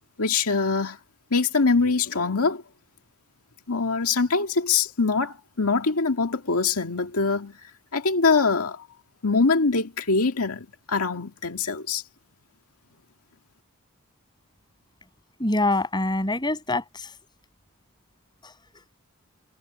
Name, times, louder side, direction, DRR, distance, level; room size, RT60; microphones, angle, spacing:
voice 1, 0.2-1.0 1.3-2.6 3.7-7.6 7.9-8.9 9.2-12.0, left 4 dB, 85° left, 1.9 m, -23 dB
voice 2, 15.4-17.2 18.4-18.8, left 2 dB, 20° left, 7.6 m, -26 dB
head